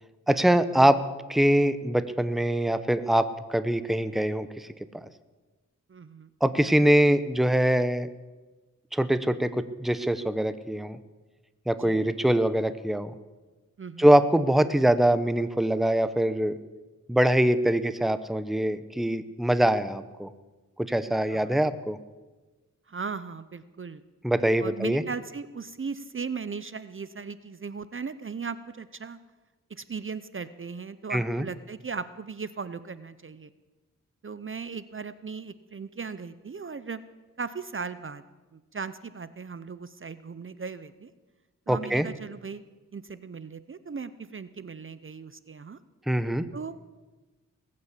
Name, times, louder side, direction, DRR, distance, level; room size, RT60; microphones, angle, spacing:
voice 1, 0.3-1.0 1.3-4.5 5.0-5.1 6.4-8.1 8.9-9.5 9.8-11.0 11.7-13.1 14.0-16.5 17.1-20.3 20.8-22.0 24.2-25.0 31.1-31.4 41.7-42.1 46.1-46.4, right 1 dB, ahead, 13 dB, 0.8 m, -23 dB
voice 2, 5.9-6.3 11.8-12.1 13.8-14.1 21.3-21.5 22.9-24.0 24.6-29.2 29.7-33.5 34.2-37.0 37.4-38.2 38.5-41.1 41.7-42.6 42.9-45.8 46.5-46.8, right 5 dB, 40° right, 14 dB, 0.7 m, -37 dB
19.5 x 8.6 x 8.3 m, 1.2 s
wide cardioid pair, 70°, 32 cm